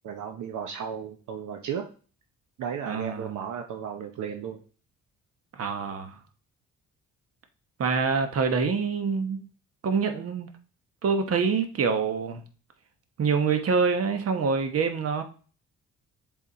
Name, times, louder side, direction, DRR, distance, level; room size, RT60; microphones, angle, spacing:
voice 1, 0.0-1.9 2.6-4.6, right 7 dB, 75° right, 4 dB, 0.9 m, -34 dB
voice 2, 2.9-3.3 5.6-6.2 7.8-9.5 9.8-10.5 11.0-12.4 13.2-15.2, right 5 dB, 50° right, 6 dB, 1.2 m, -26 dB
7.2 x 4.2 x 4.1 m, 0.39 s
cardioid pair, 90°, 30 cm